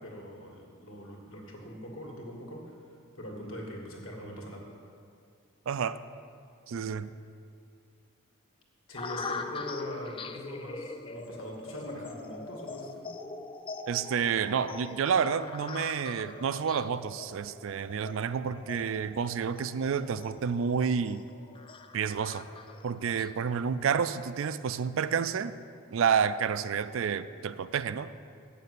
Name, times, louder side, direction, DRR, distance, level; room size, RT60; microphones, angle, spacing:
voice 1, 0.0-4.7 8.9-13.1, equal, 65° left, -1 dB, 2.0 m, -42 dB
voice 2, 5.7-6.0 6.7-7.1 13.9-21.2 21.9-22.4 22.8-25.5 25.9-28.1, right 6 dB, 65° right, 13 dB, 0.3 m, -29 dB
sound 1, 9.0-23.3, left 3 dB, 25° left, 0.3 m, -42 dB
8.5 x 6.8 x 8.2 m, 2.4 s
head